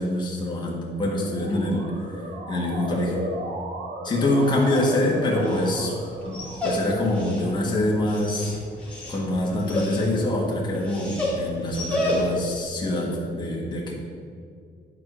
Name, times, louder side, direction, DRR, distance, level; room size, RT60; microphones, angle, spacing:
voice 1, 0.0-3.2 4.0-6.0 6.3-8.6 9.1-13.9, left 1 dB, 25° left, -4 dB, 1.7 m, -25 dB
Motor vehicle (road) / Siren, 1.1-7.0, right 1 dB, 65° right, 1.3 m, -35 dB
Dog, 4.3-12.6, left 1 dB, 5° left, 2.6 m, -31 dB
10.5 x 4.8 x 6.1 m, 2.2 s
cardioid pair, 155°, 19 cm